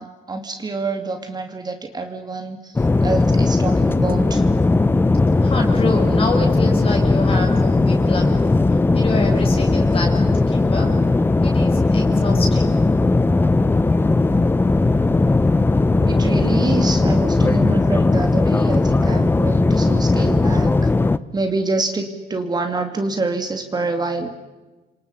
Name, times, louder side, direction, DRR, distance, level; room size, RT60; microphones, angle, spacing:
voice 1, 0.0-4.5 16.1-20.7 21.3-24.3, right 3 dB, 25° right, 6 dB, 2.4 m, -26 dB
sound 1, 2.8-21.2, left 3 dB, 15° left, 0.7 m, -17 dB
voice 2, 5.4-10.9 11.4-12.9, left 2 dB, 35° left, 1 dB, 6.3 m, -27 dB
29.5 x 25.5 x 5.6 m, 1.2 s
cardioid pair, 110°, 17 cm